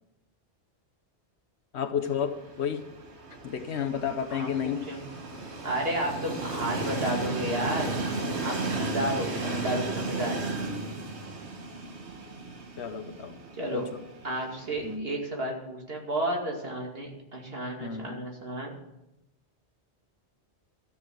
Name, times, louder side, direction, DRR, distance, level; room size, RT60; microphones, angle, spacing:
voice 1, 1.7-2.8 3.4-4.8 9.0-9.2 12.8-13.3 13.7-13.9 14.8-15.1 17.8-18.1, left 7 dB, 80° left, 8 dB, 1.1 m, -31 dB
Train, 2.0-15.0, right 3 dB, 80° right, 1.8 m, -35 dB
voice 2, 4.3-5.0 5.6-7.9 8.4-10.4 13.6-13.8 14.2-18.8, right 1 dB, 60° right, 0 dB, 2.6 m, -32 dB
13.5 x 7.2 x 7.7 m, 0.90 s
omnidirectional pair, 1.1 m